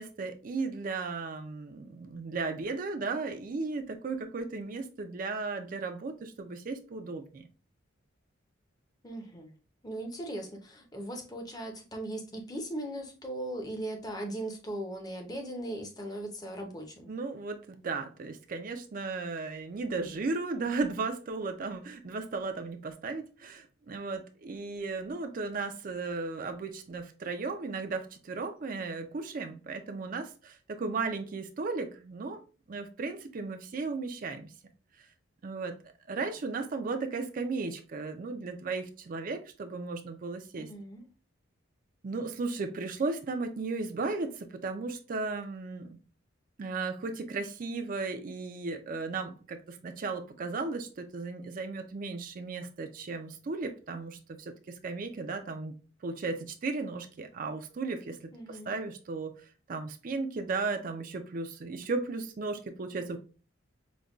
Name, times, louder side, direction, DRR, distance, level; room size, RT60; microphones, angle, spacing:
voice 1, 0.0-7.5 17.1-32.4 32.7-34.5 35.4-35.8 36.1-40.7 42.0-46.0 46.6-55.7 56.0-58.2 58.5-59.3 59.7-63.2, right 3 dB, 45° right, 0.4 m, -35 dB
voice 2, 9.0-9.5 9.8-17.1 40.5-41.1 58.3-58.7, right 1 dB, 20° left, 0.6 m, -38 dB
5.0 x 2.2 x 2.3 m
head